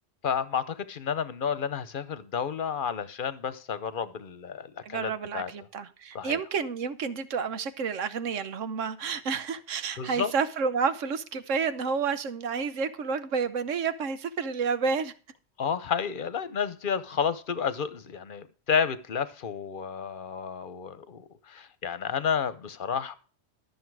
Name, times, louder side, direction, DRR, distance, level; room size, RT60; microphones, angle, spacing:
voice 1, 0.2-5.5 6.1-6.4 10.0-10.3 15.6-23.1, left 7 dB, 45° left, 1.0 m, -31 dB
voice 2, 4.8-15.1, right 5 dB, 90° right, 1.3 m, -30 dB
13.0 x 7.0 x 4.7 m
omnidirectional pair, 1.3 m